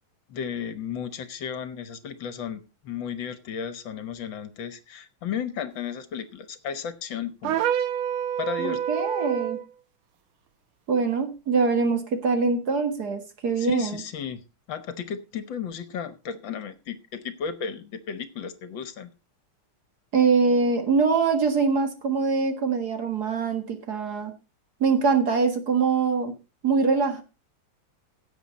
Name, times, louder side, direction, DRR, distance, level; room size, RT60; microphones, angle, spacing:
voice 1, 0.3-7.7 8.4-8.8 13.6-14.4 14.7-19.1, left 7 dB, 65° left, 12 dB, 1.7 m, -34 dB
sound 1, 7.4-9.7, right 9 dB, 85° right, 1.7 m, -27 dB
voice 2, 8.6-9.6 10.9-14.0 20.1-24.3 24.8-26.3 26.6-27.2, right 5 dB, 50° right, 6 dB, 2.1 m, -23 dB
16.0 x 7.9 x 4.1 m, 0.30 s
omnidirectional pair, 2.3 m